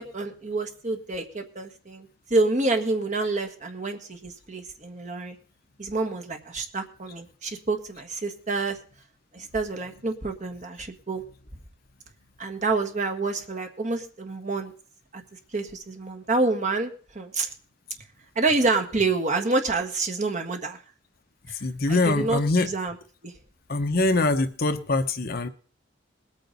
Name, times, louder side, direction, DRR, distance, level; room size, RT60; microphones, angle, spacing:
voice 1, 0.0-5.4 5.8-8.8 9.3-11.2 12.4-14.7 15.1-15.2 15.5-17.5 18.3-20.8 21.5-21.6 21.9-22.9 23.2-23.3, right 3 dB, 40° right, 4 dB, 1.6 m, -28 dB
voice 2, 21.6-22.7 23.7-25.5, left 2 dB, 50° left, 9 dB, 0.9 m, -23 dB
20.5 x 8.7 x 4.1 m, 0.42 s
head